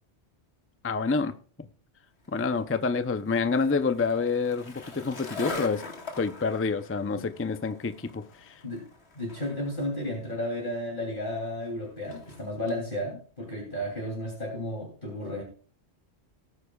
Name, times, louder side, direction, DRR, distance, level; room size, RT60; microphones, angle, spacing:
voice 1, 0.8-1.3 2.3-5.8 6.2-8.5, left 4 dB, 20° left, 0.4 m, -28 dB
Skateboard, 2.2-12.8, left 3 dB, 75° left, 1.9 m, -44 dB
voice 2, 9.1-15.4, left 1 dB, 50° left, 3.1 m, -33 dB
18.0 x 9.7 x 2.3 m
omnidirectional pair, 1.1 m